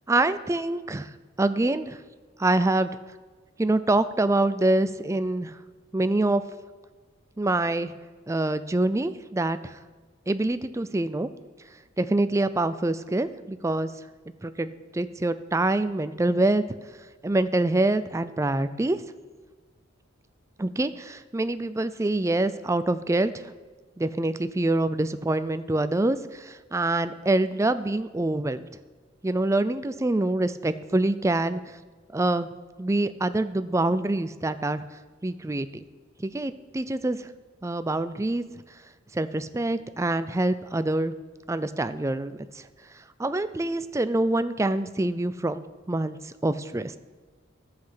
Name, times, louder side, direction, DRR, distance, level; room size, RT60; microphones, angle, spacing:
voice 1, 0.1-1.1 1.4-2.0 2.4-2.9 3.6-5.6 5.9-6.4 7.4-7.9 8.3-9.8 10.3-11.3 12.0-13.9 14.4-16.6 17.2-19.0 20.6-23.4 24.0-28.7 29.2-31.6 32.1-32.5 32.8-34.8 35.2-35.8 36.2-37.3 37.6-38.4 39.1-41.1 41.5-42.6 43.2-47.0, right 2 dB, 15° right, 13 dB, 0.4 m, -25 dB
11.5 x 7.7 x 5.7 m, 1.4 s
head